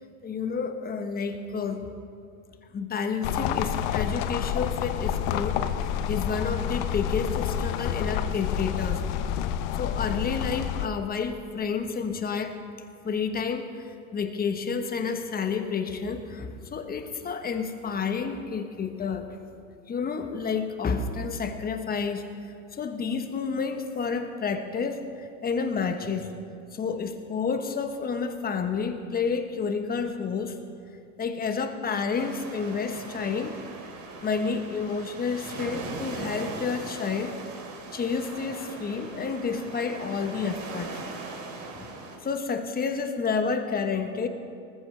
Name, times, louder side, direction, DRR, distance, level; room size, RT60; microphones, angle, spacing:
voice 1, 0.2-1.9 2.7-9.1 9.7-12.6 13.0-13.7 14.1-19.4 19.9-26.3 26.7-30.6 31.2-33.6 34.2-37.3 37.9-40.9 41.8-41.9 42.2-44.3, left 5 dB, 20° left, 7 dB, 1.2 m, -30 dB
sound 1, 3.2-10.9, left 9 dB, 60° left, 0.8 m, -28 dB
sound 2, 32.1-42.2, right 3 dB, 45° right, 3.1 m, -40 dB
19.5 x 15.0 x 3.4 m, 2.6 s
supercardioid pair, 110°, 41 cm